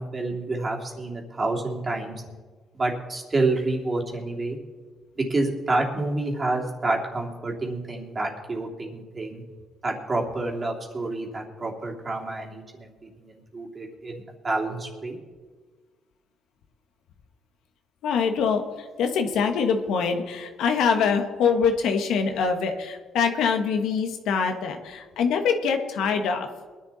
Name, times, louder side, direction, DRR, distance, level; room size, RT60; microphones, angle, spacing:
voice 1, 0.0-2.1 2.8-4.6 5.3-9.4 9.8-12.9 13.2-14.1 14.4-15.2, right 2 dB, 30° right, -1 dB, 3.0 m, -28 dB
voice 2, 18.0-26.5, left 6 dB, 85° left, 5 dB, 1.6 m, -24 dB
22.0 x 10.5 x 4.3 m, 1.4 s
cardioid pair, 90°, 0 cm